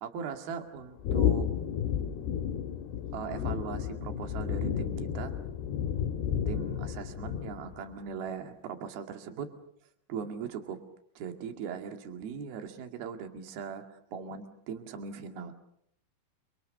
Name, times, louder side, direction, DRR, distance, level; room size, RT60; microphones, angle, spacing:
voice 1, 0.0-1.5 3.1-5.4 6.5-9.5 10.1-10.8 11.2-13.8 14.1-15.5, right 7 dB, 65° right, 6 dB, 3.9 m, -39 dB
sound 1, 1.0-7.8, left 9 dB, 75° left, 3.3 m, -32 dB
29.5 x 26.0 x 6.6 m, 0.69 s
omnidirectional pair, 5.0 m